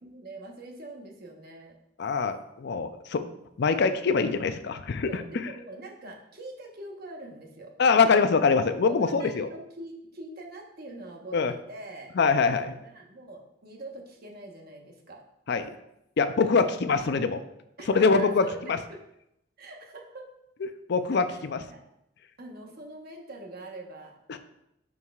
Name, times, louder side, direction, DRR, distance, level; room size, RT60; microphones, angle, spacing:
voice 1, 0.0-1.7 5.1-7.7 8.9-12.1 12.5-15.2 16.9-17.4 17.8-19.0 19.6-20.3 21.3-21.4 21.7-21.8 22.4-24.2, right 2 dB, 50° right, 0 dB, 1.1 m, -44 dB
voice 2, 2.0-3.2 3.6-5.2 7.8-9.5 11.3-11.5 12.2-12.7 15.5-15.7 16.2-17.4 17.9-18.8 20.9-21.6 24.3-24.4, left 4 dB, 55° left, 10 dB, 0.4 m, -24 dB
11.0 x 4.7 x 2.4 m, 0.83 s
head